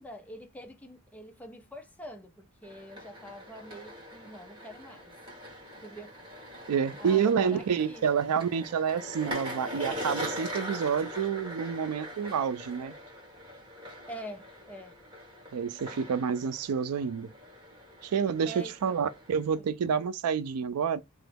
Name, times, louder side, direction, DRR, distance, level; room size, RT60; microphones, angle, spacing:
voice 1, 0.0-5.1 5.7-6.1 7.0-8.1 14.1-15.0 18.5-19.1 19.5-19.7, right 1 dB, 5° left, 0.5 m, -45 dB
sound 1, 2.6-19.6, equal, 25° right, 1.7 m, -42 dB
voice 2, 6.7-12.9 15.5-17.3 18.0-18.5 18.8-21.0, right 7 dB, 80° right, 0.4 m, -28 dB
3.0 x 2.2 x 3.3 m
head